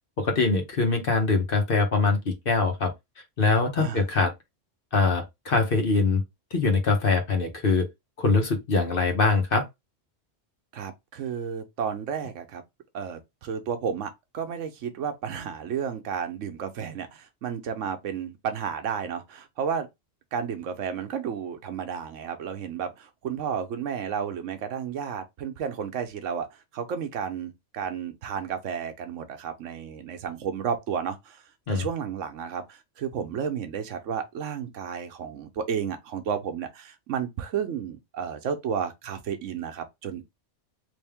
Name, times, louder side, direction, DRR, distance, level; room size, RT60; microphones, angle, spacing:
voice 1, 0.2-2.9 3.4-4.3 4.9-6.2 6.5-7.9 8.2-9.6 31.7-31.9, left 4 dB, 50° left, 1.1 m, -23 dB
voice 2, 10.7-12.6 12.9-19.9 20.3-31.4 31.7-40.2, right 7 dB, 80° right, 1.1 m, -32 dB
3.5 x 2.6 x 3.5 m
omnidirectional pair, 1.3 m